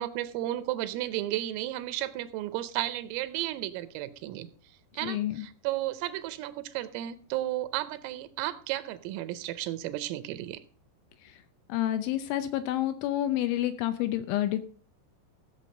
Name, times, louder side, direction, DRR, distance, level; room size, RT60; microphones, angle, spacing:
voice 1, 0.0-4.5 4.9-10.6, right 14 dB, 85° right, 13 dB, 3.2 m, -33 dB
voice 2, 5.0-5.4 11.3-11.4 11.7-14.6, left 13 dB, 80° left, 10 dB, 2.8 m, -29 dB
16.0 x 7.0 x 5.3 m, 0.43 s
omnidirectional pair, 6.0 m